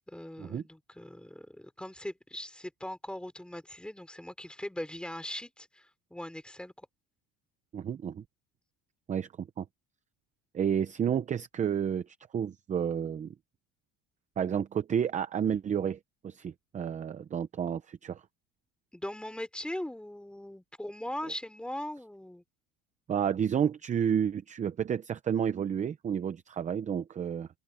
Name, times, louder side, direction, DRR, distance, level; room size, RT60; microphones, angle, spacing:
voice 1, 0.1-6.9 18.9-22.4, left 1 dB, 5° left, 3.4 m, -40 dB
voice 2, 7.7-8.2 9.1-9.7 10.5-13.3 14.4-16.0 16.2-18.2 23.1-27.5, right 8 dB, 20° right, 0.6 m, -31 dB
open air
cardioid pair, 165°, 33 cm